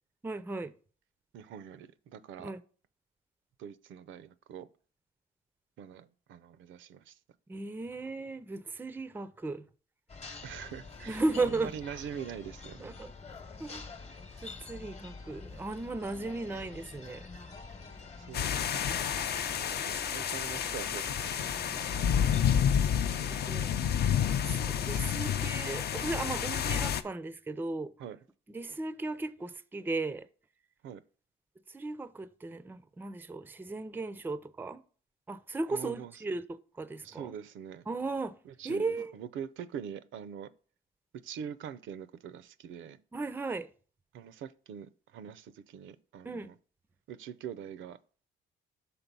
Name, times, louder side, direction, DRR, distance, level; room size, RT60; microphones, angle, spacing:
voice 1, 0.2-0.7 2.4-2.6 7.5-9.6 11.1-11.7 12.8-13.1 13.6-13.9 14.4-17.3 23.3-23.7 24.5-27.9 28.5-30.3 31.7-34.8 35.3-37.3 37.9-38.3 38.6-39.1 43.1-43.7 46.2-46.5, right 3 dB, 10° right, 0.4 m, -36 dB
voice 2, 1.3-2.5 3.6-4.7 5.8-7.2 10.4-12.9 18.1-19.2 19.6-21.5 22.0-22.2 28.0-28.2 30.8-31.0 35.7-36.1 37.0-37.8 38.4-40.5 41.2-43.0 44.1-46.5 47.1-48.0, right 8 dB, 75° right, 0.5 m, -44 dB
sound 1, 10.1-22.4, left 4 dB, 35° left, 1.0 m, -47 dB
sound 2, 18.3-27.0, left 8 dB, 55° left, 0.5 m, -30 dB
6.0 x 3.8 x 5.3 m
cardioid pair, 90°, 20 cm